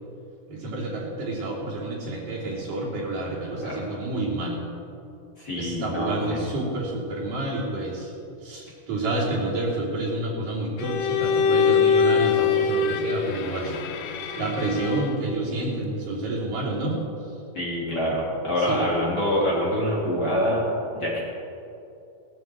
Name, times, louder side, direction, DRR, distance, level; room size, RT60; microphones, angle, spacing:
voice 1, 0.5-4.6 5.6-8.1 8.4-17.0 18.7-18.9, right 2 dB, 70° right, -6 dB, 4.9 m, -29 dB
voice 2, 5.4-6.5 17.5-20.6 20.9-21.2, equal, 30° left, -6 dB, 3.6 m, -25 dB
Bowed string instrument, 10.8-15.3, left 6 dB, 85° left, 2.7 m, -23 dB
19.5 x 13.5 x 4.6 m, 2.7 s
omnidirectional pair, 3.9 m